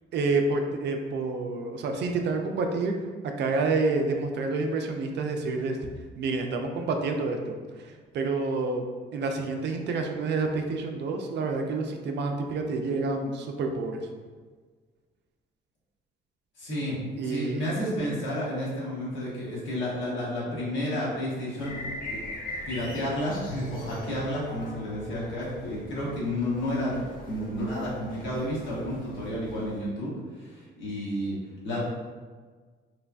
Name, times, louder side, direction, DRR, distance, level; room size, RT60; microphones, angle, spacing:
voice 1, 0.1-2.9 3.4-5.8 6.2-7.6 7.8-8.8 9.1-14.0 17.2-17.6, right 3 dB, 60° right, 4 dB, 0.4 m, -28 dB
voice 2, 16.6-17.0 17.2-21.8 22.1-22.2 22.7-26.9 27.2-30.1 30.4-31.4 31.6-31.8, left 1 dB, 75° left, -7 dB, 1.2 m, -31 dB
sound 1, 21.6-29.8, left 1 dB, 45° left, 0.8 m, -42 dB
3.2 x 2.1 x 2.4 m, 1.5 s
cardioid pair, 90°, 20 cm